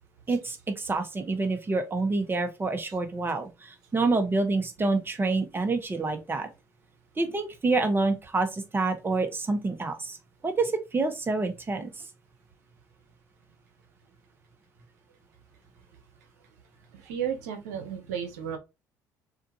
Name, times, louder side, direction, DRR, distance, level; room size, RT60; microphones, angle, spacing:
voice 1, 0.3-6.5 7.2-10.2 10.4-11.9, right 3 dB, 25° right, 1.4 m, -27 dB
voice 2, 16.9-18.6, right 8 dB, 85° right, 1.0 m, -33 dB
6.5 x 2.7 x 2.9 m
hypercardioid pair, 65°, 9 cm